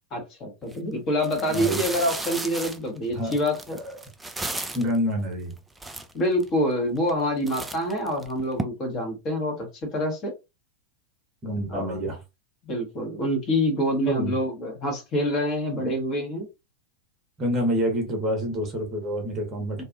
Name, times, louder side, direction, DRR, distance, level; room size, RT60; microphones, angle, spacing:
voice 1, 0.1-3.8 6.1-9.7 9.9-10.3 11.7-12.0 12.6-16.5 19.8-19.9, equal, 30° left, 1.0 m, -26 dB
sound 1, 0.6-0.8 1.2-5.0 5.5-5.6 5.8-6.5 7.0-7.2 7.5-8.6, right 2 dB, 10° right, 0.3 m, -34 dB
voice 2, 1.5-1.8 3.1-3.4 3.7-4.0 4.7-5.5 11.4-12.2 14.1-14.3 15.7-15.9 17.4-19.8, equal, 25° right, 0.9 m, -27 dB
2.4 x 2.4 x 2.4 m
figure-of-eight pair, 90°, 0 cm